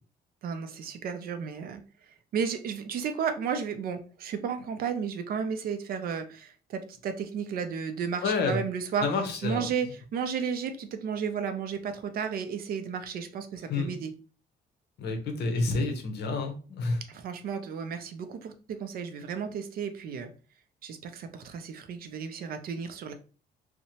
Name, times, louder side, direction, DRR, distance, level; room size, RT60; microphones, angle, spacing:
voice 1, 0.4-1.8 2.3-9.1 9.4-14.1 17.1-20.3 20.8-23.1, right 6 dB, 55° right, 8 dB, 0.4 m, -33 dB
voice 2, 8.2-8.6 9.0-9.7 13.7-14.0 15.0-17.0, left 3 dB, 70° left, 4 dB, 0.7 m, -29 dB
2.8 x 2.1 x 2.8 m, 0.37 s
cardioid pair, 170°, 18 cm